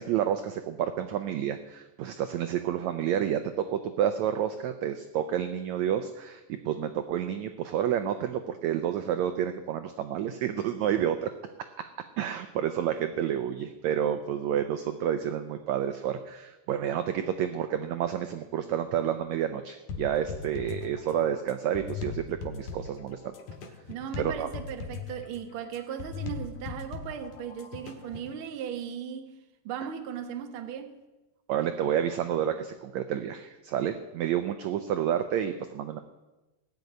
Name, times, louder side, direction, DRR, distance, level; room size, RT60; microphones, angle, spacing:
voice 1, 0.0-11.3 12.2-23.3 24.2-24.5 31.5-36.0, right 9 dB, 80° right, 1.6 m, -29 dB
sound 1, 19.9-28.3, left 5 dB, 65° left, 2.7 m, -39 dB
voice 2, 23.9-29.3 29.6-30.9, right 8 dB, 65° right, 1.4 m, -37 dB
18.5 x 6.7 x 9.2 m
omnidirectional pair, 4.0 m